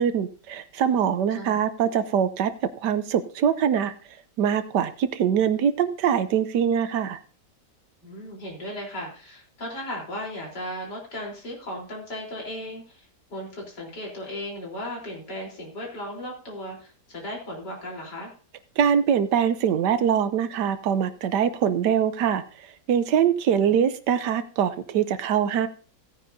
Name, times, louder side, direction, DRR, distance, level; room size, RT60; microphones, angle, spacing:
voice 1, 0.0-2.5 2.8-3.9 4.4-7.2 18.8-22.4 22.9-25.7, right 8 dB, 80° right, 12 dB, 1.4 m, -23 dB
voice 2, 8.0-18.3 23.5-23.7, left 1 dB, 80° left, -1 dB, 4.4 m, -36 dB
17.0 x 9.2 x 2.7 m, 0.38 s
omnidirectional pair, 1.8 m